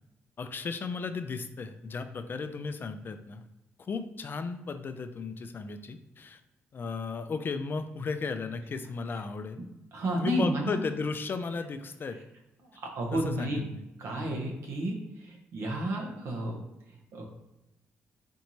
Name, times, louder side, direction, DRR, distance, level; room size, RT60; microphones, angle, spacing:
voice 1, 0.4-3.5 3.8-6.4 6.7-9.6 10.2-12.2 13.1-13.8 14.1-14.4, left 4 dB, 45° left, 9 dB, 0.4 m, -35 dB
voice 2, 9.9-10.8 12.7-13.6 14.0-16.6 17.1-17.2, right 1 dB, 70° right, 0 dB, 0.9 m, -31 dB
4.3 x 2.6 x 3.0 m, 0.97 s
supercardioid pair, 60°, 5 cm